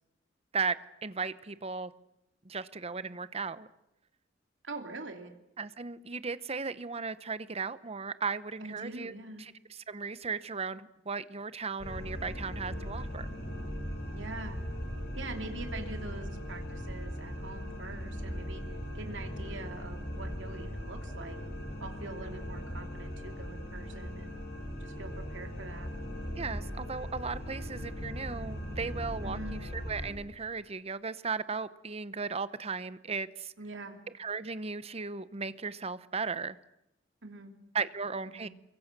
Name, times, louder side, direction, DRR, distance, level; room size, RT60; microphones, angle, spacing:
voice 1, 0.5-1.9 2.4-3.7 5.6-13.3 26.4-33.5 34.2-36.6 37.7-38.5, right 5 dB, 35° right, 0.9 m, -36 dB
voice 2, 4.6-5.4 8.6-9.4 12.7-12.9 14.1-14.6 15.2-21.4 21.8-24.4 24.8-25.9 29.2-29.6 33.6-34.0 37.2-37.5 38.3-38.5, right 3 dB, 75° right, 3.0 m, -44 dB
sound 1, 11.8-30.1, equal, 55° left, 7.6 m, -39 dB
29.0 x 23.0 x 6.8 m
head